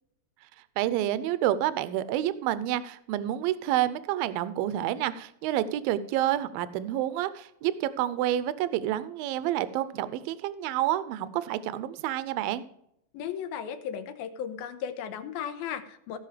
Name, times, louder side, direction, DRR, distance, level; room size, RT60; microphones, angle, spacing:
voice 1, 0.8-12.6, right 12 dB, 80° right, 15 dB, 2.3 m, -29 dB
voice 2, 13.1-16.2, left 8 dB, 85° left, 10 dB, 2.8 m, -35 dB
16.5 x 5.7 x 5.0 m, 0.74 s
omnidirectional pair, 4.3 m